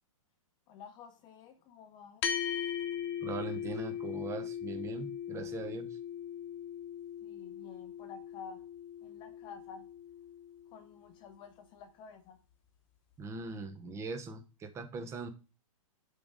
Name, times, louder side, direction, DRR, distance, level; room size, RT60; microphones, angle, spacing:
voice 1, 0.7-2.2 7.2-8.7 9.0-9.8 10.7-12.4, left 6 dB, 25° left, 0.6 m, -51 dB
sound 1, 2.2-10.9, left 8 dB, 45° left, 1.0 m, -39 dB
voice 2, 3.2-6.0 13.2-15.3, right 3 dB, 15° right, 0.8 m, -40 dB
6.8 x 3.7 x 5.1 m
hypercardioid pair, 140°, 18 cm